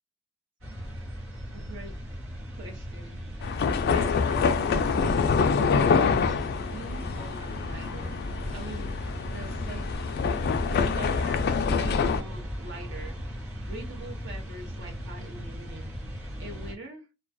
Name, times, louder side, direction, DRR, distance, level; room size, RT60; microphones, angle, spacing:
sound 1, 0.6-16.7, equal, 85° right, 1.1 m, -38 dB
voice 1, 1.5-1.9 2.5-4.8 5.1-6.0 6.6-8.3 8.5-8.9 9.3-10.4 10.7-13.2 13.6-15.9 16.2-17.1, right 2 dB, 60° right, 0.8 m, -43 dB
sound 2, 3.4-12.2, left 5 dB, 50° left, 0.3 m, -26 dB
2.2 x 2.2 x 2.5 m
head